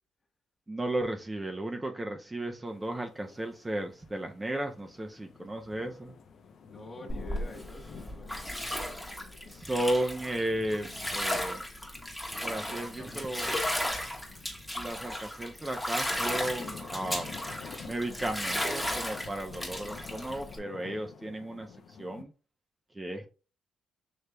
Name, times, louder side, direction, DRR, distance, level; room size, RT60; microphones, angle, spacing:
voice 1, 0.7-6.1 8.4-8.6 9.5-11.6 12.4-13.5 14.8-17.4 17.8-22.3 22.9-23.3, right 1 dB, 15° right, 0.6 m, -34 dB
sound 1, 2.7-22.2, left 6 dB, 65° left, 0.6 m, -49 dB
voice 2, 6.6-8.7 12.6-13.6, left 1 dB, 30° left, 1.3 m, -48 dB
Bathtub (filling or washing), 7.1-20.6, left 1 dB, 5° left, 1.1 m, -35 dB
6.6 x 3.1 x 2.2 m
cardioid pair, 90°, 0 cm